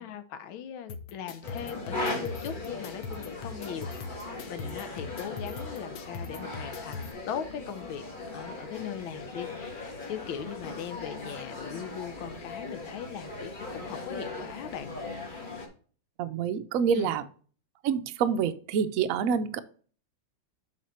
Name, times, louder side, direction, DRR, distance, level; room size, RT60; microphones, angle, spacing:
voice 1, 0.0-14.9 16.9-17.2, left 8 dB, 90° left, 1.6 m, -40 dB
sound 1, 0.9-7.1, left 4 dB, 65° left, 1.3 m, -41 dB
sound 2, 1.4-15.7, left 2 dB, 30° left, 1.3 m, -39 dB
voice 2, 16.2-17.2 17.8-19.6, right 7 dB, 80° right, 0.7 m, -27 dB
7.4 x 4.0 x 4.3 m
omnidirectional pair, 2.1 m